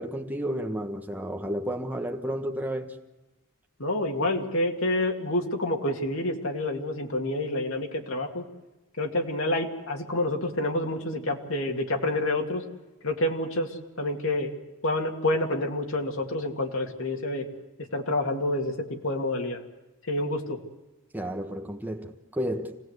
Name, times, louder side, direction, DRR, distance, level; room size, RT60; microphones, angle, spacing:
voice 1, 0.0-2.9 21.1-22.8, equal, 10° right, 1.3 m, -32 dB
voice 2, 3.8-8.4 9.0-12.6 13.0-14.5 14.8-17.5 17.9-19.6 20.1-20.6, left 1 dB, 70° left, 2.4 m, -28 dB
26.0 x 18.0 x 8.1 m
head